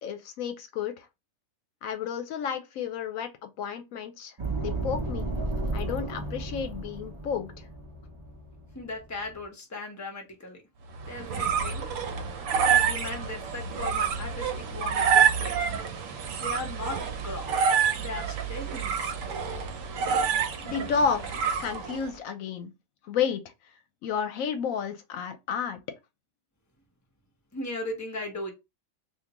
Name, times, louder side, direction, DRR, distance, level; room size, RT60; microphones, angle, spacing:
voice 1, 0.0-1.1 1.8-5.3 5.7-7.7 20.6-22.7 23.0-23.4 24.0-25.8, left 6 dB, 80° left, 1.0 m, -31 dB
sound 1, 4.4-9.4, right 2 dB, 40° right, 0.4 m, -34 dB
voice 2, 8.7-10.6 11.1-11.9 12.7-15.7 16.4-17.6 18.0-19.1 27.5-28.5, left 2 dB, 15° left, 0.9 m, -37 dB
sound 2, 10.9-22.1, right 7 dB, 75° right, 1.0 m, -27 dB
3.6 x 2.5 x 2.9 m
omnidirectional pair, 1.4 m